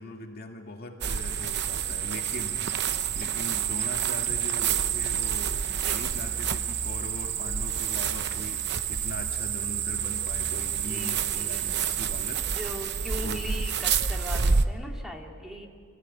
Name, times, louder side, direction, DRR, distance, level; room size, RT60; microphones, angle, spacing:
voice 1, 0.0-2.8 3.2-5.6 5.9-12.6 13.2-13.6, left 1 dB, 45° left, 2 dB, 2.0 m, -40 dB
sound 1, 1.0-14.6, right 7 dB, 55° right, 0.8 m, -28 dB
voice 2, 5.7-6.0 10.9-11.7 12.4-15.7, equal, ahead, 1 dB, 2.1 m, -40 dB
27.0 x 14.5 x 9.7 m, 2.2 s
head